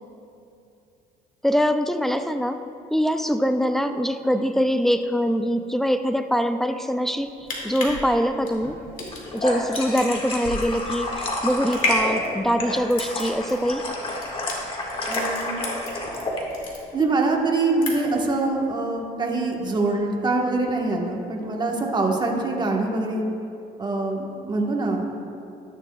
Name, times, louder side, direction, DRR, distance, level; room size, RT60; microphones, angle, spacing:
voice 1, 1.4-2.6 2.9-8.8 9.3-13.9, equal, ahead, 8 dB, 0.4 m, -23 dB
sound 1, 7.2-16.2 16.5-17.3 17.6-18.3 18.6-18.7, left 2 dB, 55° left, 2.2 m, -31 dB
sound 2, 9.0-16.4, left 1 dB, 30° left, 1.6 m, -30 dB
voice 2, 15.1-15.6 16.9-23.2 23.8-25.0, right 3 dB, 25° right, 0 dB, 1.2 m, -24 dB
12.5 x 10.5 x 2.3 m, 2.7 s
cardioid pair, 110°, 17 cm